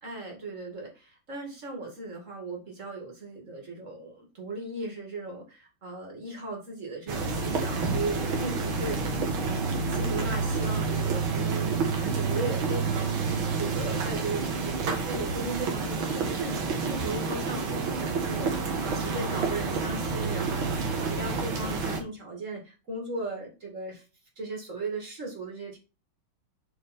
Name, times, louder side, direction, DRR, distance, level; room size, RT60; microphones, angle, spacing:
voice 1, 0.0-13.3 13.6-20.6 20.9-24.0 24.4-25.8, right 2 dB, 35° right, 1 dB, 2.7 m, -37 dB
sound 1, 7.1-22.0, right 4 dB, 70° right, 2.3 m, -29 dB
8.1 x 4.6 x 4.2 m, 0.31 s
omnidirectional pair, 2.3 m